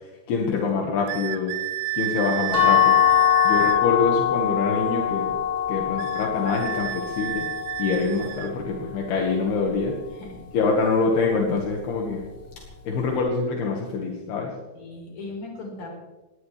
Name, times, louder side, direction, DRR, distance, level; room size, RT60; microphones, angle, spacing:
voice 1, 0.3-1.6 1.9-3.0 3.4-5.4 5.7-7.5 7.8-10.0 10.5-12.2 12.9-14.5, left 4 dB, 75° left, 0 dB, 3.7 m, -25 dB
sound 1, 1.1-3.8 6.0-8.5, right 15 dB, 85° right, 2.8 m, -30 dB
sound 2, 2.5-8.3, left 11 dB, 15° left, 7.7 m, -23 dB
voice 2, 14.7-15.9, left 3 dB, 45° left, -1 dB, 5.8 m, -38 dB
19.5 x 18.5 x 3.4 m, 1.1 s
omnidirectional pair, 4.6 m